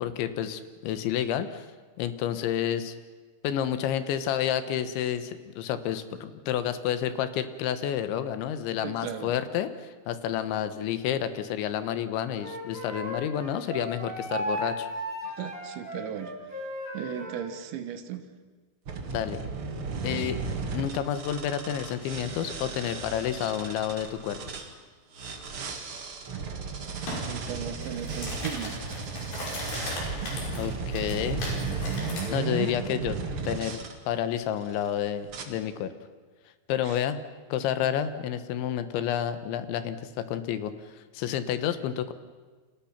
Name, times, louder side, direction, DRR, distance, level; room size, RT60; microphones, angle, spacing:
voice 1, 0.0-1.7 2.0-2.9 3.4-14.9 19.1-19.4 20.0-20.4 20.7-24.4 30.6-31.4 32.3-33.2 33.4-33.8 34.1-35.9 36.7-37.2 37.5-42.1, left 10 dB, 75° left, 11 dB, 3.4 m, -30 dB
voice 2, 8.8-9.3 15.2-16.3 16.9-18.3 27.3-29.0 36.9-37.0, right 9 dB, 75° right, 8 dB, 3.6 m, -36 dB
Wind instrument woodwind instrument, 12.4-17.5, equal, 15° right, 5.0 m, -35 dB
sound 1, 18.9-24.7 25.1-33.9 34.6-34.9 35.3-35.4, right 4 dB, 50° right, 1.7 m, -35 dB
sound 2, 27.1-27.2 27.7-32.3, left 2 dB, 55° left, 7.5 m, -38 dB
30.0 x 25.0 x 5.9 m, 1.4 s
omnidirectional pair, 5.4 m